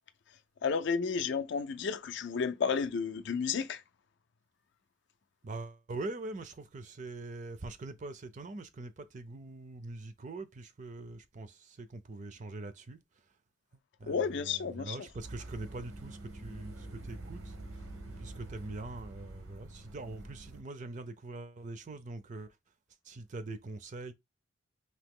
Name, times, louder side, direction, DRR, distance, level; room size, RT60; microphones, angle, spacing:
voice 1, 0.6-3.8 14.1-15.0, left 5 dB, 60° left, 0.4 m, -32 dB
voice 2, 5.4-13.2 14.0-17.6 18.2-22.5 23.0-24.1, right 2 dB, 35° right, 0.4 m, -43 dB
sound 1, 15.2-20.6, right 2 dB, 85° right, 1.0 m, -46 dB
2.8 x 2.8 x 3.6 m
head